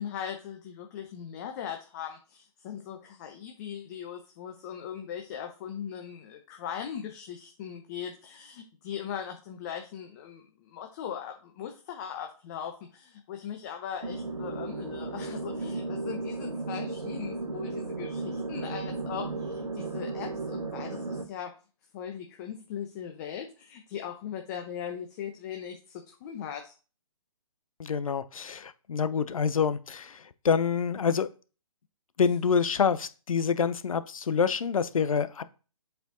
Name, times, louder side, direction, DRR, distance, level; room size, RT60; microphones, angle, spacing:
voice 1, 0.0-21.5 21.9-26.7, left 8 dB, 30° left, 3 dB, 0.9 m, -39 dB
sound 1, 14.0-21.3, right 3 dB, 85° right, 1.4 m, -35 dB
voice 2, 27.8-31.3 32.2-35.4, left 6 dB, 65° left, 14 dB, 0.8 m, -27 dB
7.9 x 4.7 x 3.9 m, 0.35 s
figure-of-eight pair, 140°, 19 cm